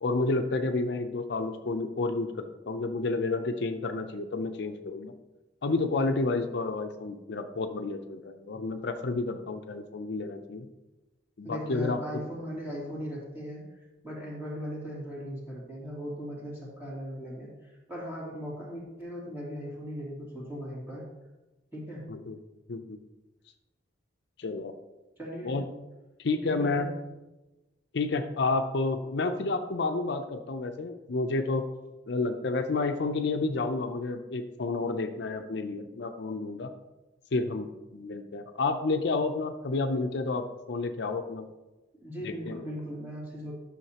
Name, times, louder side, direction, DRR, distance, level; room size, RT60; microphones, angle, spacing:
voice 1, 0.0-5.1 5.6-10.7 11.4-12.2 22.1-22.4 22.7-23.0 24.4-24.7 25.4-25.6 26.2-26.9 27.9-31.6 32.1-36.7 37.3-41.5 42.2-42.6, left 3 dB, 65° left, 7 dB, 0.5 m, -30 dB
voice 2, 11.4-21.0 21.7-22.0 25.2-25.5 26.4-26.9 42.0-43.5, equal, 10° right, -6 dB, 2.7 m, -38 dB
11.0 x 6.4 x 2.9 m, 1.1 s
head